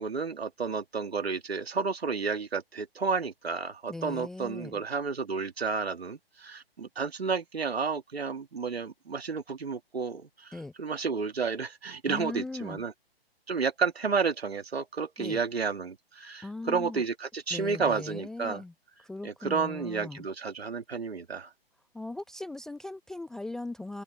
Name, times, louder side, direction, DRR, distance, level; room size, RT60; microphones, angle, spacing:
voice 1, 0.0-12.9 13.5-18.6 19.2-21.5, right 5 dB, 80° right, 2.6 m, -31 dB
voice 2, 3.9-4.8 10.5-10.7 12.1-12.8 15.2-15.4 16.4-17.0 17.5-18.7 19.0-20.3 21.9-24.0, left 2 dB, ahead, 0.4 m, -39 dB
figure-of-eight pair, 135°, 31 cm